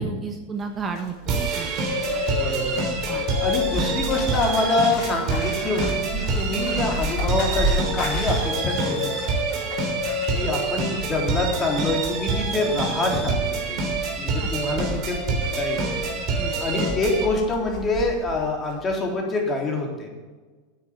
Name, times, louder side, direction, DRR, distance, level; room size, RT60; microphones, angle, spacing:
voice 1, 0.0-1.7 2.3-2.7 3.1-3.2 14.4-14.8 16.4-16.5, right 5 dB, 30° right, 4 dB, 1.3 m, -34 dB
Bird, 0.6-18.4 18.7-19.0, left 2 dB, 45° left, 4.6 m, -31 dB
sound 1, 1.3-17.2, right 4 dB, 45° right, 3.4 m, -27 dB
voice 2, 2.4-3.1 3.4-9.3 10.3-13.8 14.2-15.9 16.6-20.1, left 2 dB, 25° left, -1 dB, 3.7 m, -26 dB
9.7 x 8.5 x 8.0 m, 1.3 s
hypercardioid pair, 95°, 0 cm